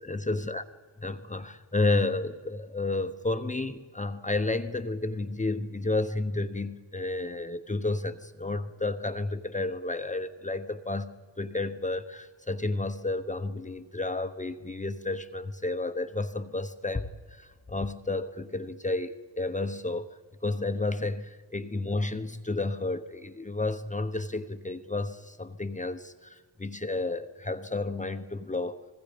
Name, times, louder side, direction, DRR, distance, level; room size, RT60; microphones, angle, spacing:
voice 1, 0.0-0.6 1.0-20.1 20.4-28.9, left 2 dB, 15° left, 9 dB, 1.0 m, -31 dB
30.0 x 20.5 x 5.2 m, 1.5 s
cardioid pair, 85°, 47 cm